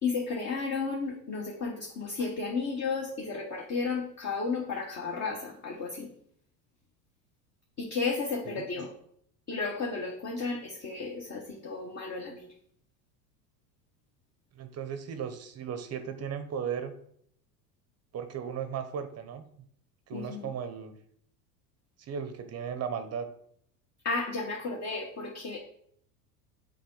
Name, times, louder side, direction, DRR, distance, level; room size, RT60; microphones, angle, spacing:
voice 1, 0.0-6.1 7.8-8.9 9.5-12.5 20.1-20.5 24.0-25.6, left 4 dB, 35° left, -1 dB, 1.2 m, -33 dB
voice 2, 14.5-16.9 18.1-19.5 20.1-21.0 22.0-23.3, right 7 dB, 30° right, 9 dB, 0.7 m, -36 dB
6.5 x 4.0 x 3.9 m, 0.67 s
hypercardioid pair, 95°, 49 cm